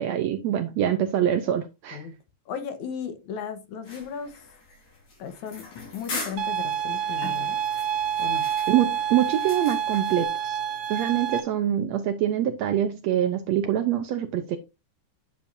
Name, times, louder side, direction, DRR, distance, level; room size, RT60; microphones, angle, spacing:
voice 1, 0.0-2.0 8.7-10.6 10.9-14.6, right 10 dB, 75° right, 1.7 m, -25 dB
voice 2, 2.5-4.3 5.2-7.6 8.2-8.4, left 7 dB, 70° left, 2.4 m, -36 dB
sound 1, 3.8-10.3, left 3 dB, 90° left, 5.9 m, -41 dB
sound 2, 6.4-11.4, right 9 dB, 90° right, 1.0 m, -28 dB
10.0 x 6.9 x 2.7 m
omnidirectional pair, 3.7 m